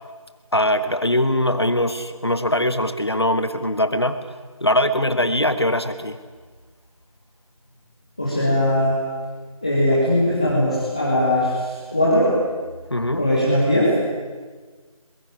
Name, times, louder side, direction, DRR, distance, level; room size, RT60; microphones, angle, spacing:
voice 1, 0.5-4.2 4.6-6.2 12.9-13.2, left 1 dB, 45° left, 11 dB, 1.2 m, -21 dB
voice 2, 8.2-9.0 9.6-12.3 13.2-14.0, left 1 dB, 10° left, -7 dB, 1.8 m, -19 dB
22.0 x 21.5 x 9.9 m, 1.4 s
figure-of-eight pair, 170°, 18 cm